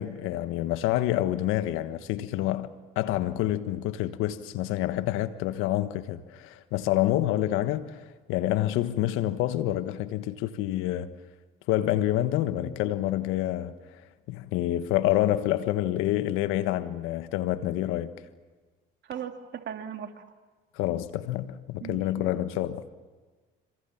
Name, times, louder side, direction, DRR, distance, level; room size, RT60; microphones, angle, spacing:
voice 1, 0.0-2.7 2.9-11.1 11.7-13.7 14.3-18.1 20.7-22.8, left 14 dB, 80° left, 1.4 m, -27 dB
voice 2, 19.1-20.2 21.8-22.3, right 8 dB, 60° right, 2.5 m, -38 dB
26.5 x 25.0 x 7.3 m
supercardioid pair, 70°, 21 cm